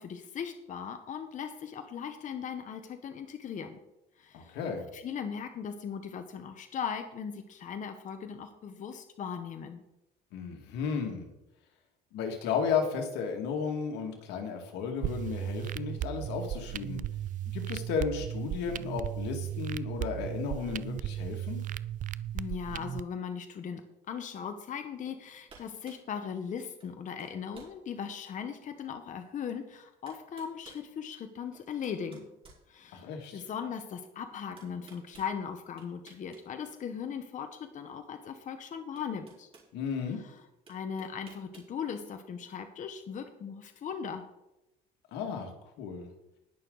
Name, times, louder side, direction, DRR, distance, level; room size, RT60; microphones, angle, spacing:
voice 1, 0.0-3.8 4.2-4.6 4.9-9.8 22.3-23.8 24.1-32.3 32.7-39.5 40.1-40.4 40.7-44.2, left 7 dB, 50° left, 7 dB, 1.1 m, -38 dB
voice 2, 4.3-4.9 10.3-11.3 12.1-17.0 17.5-21.6 32.9-33.4 39.7-40.2 45.1-45.5 45.8-46.1, left 6 dB, 90° left, 3 dB, 2.2 m, -34 dB
sound 1, 15.0-23.0, right 12 dB, 50° right, 0.4 m, -36 dB
sound 2, 25.0-25.2 25.5-26.1 26.8-26.9 27.2-27.8 28.3-28.4 29.5-29.6 30.1-30.9 31.5-33.2 34.6-35.3 35.8-36.4 36.7-36.9 38.3-38.4 39.0-39.7 40.7-41.7, right 4 dB, 35° right, 4.2 m, -55 dB
19.5 x 6.6 x 4.0 m, 0.90 s
cardioid pair, 110°, 17 cm